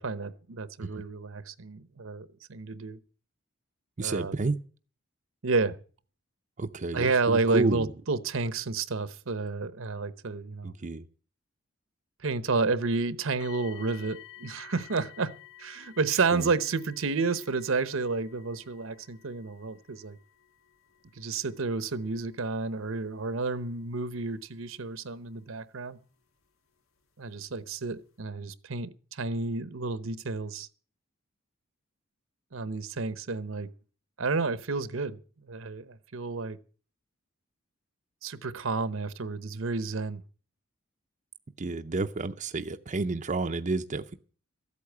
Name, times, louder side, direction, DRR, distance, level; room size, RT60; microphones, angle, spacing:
voice 1, 0.0-3.0 4.0-4.3 5.4-5.8 6.9-10.7 12.2-15.3 15.6-20.2 21.2-26.0 27.2-30.7 32.5-33.7 34.2-36.6 38.2-40.2, right 4 dB, 75° right, 0.9 m, -30 dB
voice 2, 4.0-4.6 6.6-7.9 10.6-11.1 16.3-16.5 41.6-44.1, right 3 dB, 35° right, 0.6 m, -30 dB
sound 1, 13.4-26.3 27.1-27.2 27.8-27.9, left 13 dB, 85° left, 1.3 m, -54 dB
14.0 x 8.5 x 8.0 m
head